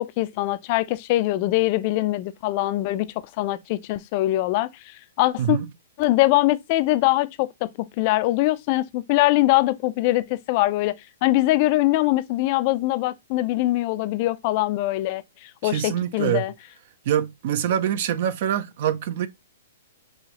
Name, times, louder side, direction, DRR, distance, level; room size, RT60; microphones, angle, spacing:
voice 1, 0.0-5.6 6.0-16.5, left 17 dB, 35° left, 0.4 m, -23 dB
voice 2, 15.6-16.4 17.1-19.3, right 10 dB, 50° right, 0.5 m, -24 dB
5.5 x 3.0 x 2.9 m
hypercardioid pair, 160°, 0 cm